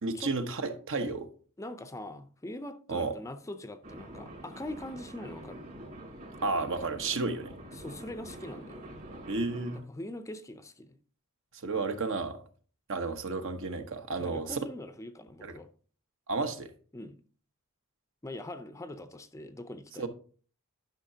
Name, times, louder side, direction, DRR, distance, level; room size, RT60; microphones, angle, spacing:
voice 1, 0.0-1.3 2.9-3.1 6.4-7.5 9.3-9.8 11.6-12.4 12.9-14.6 15.4-15.5 16.3-16.7 20.0-20.1, right 3 dB, 60° right, 1.0 m, -32 dB
voice 2, 1.6-5.6 7.7-8.9 9.9-11.0 14.2-15.7 16.9-17.2 18.2-20.1, left 1 dB, 15° left, 0.5 m, -42 dB
sound 1, 3.8-9.8, right 1 dB, 40° right, 2.9 m, -46 dB
12.0 x 5.7 x 2.8 m
head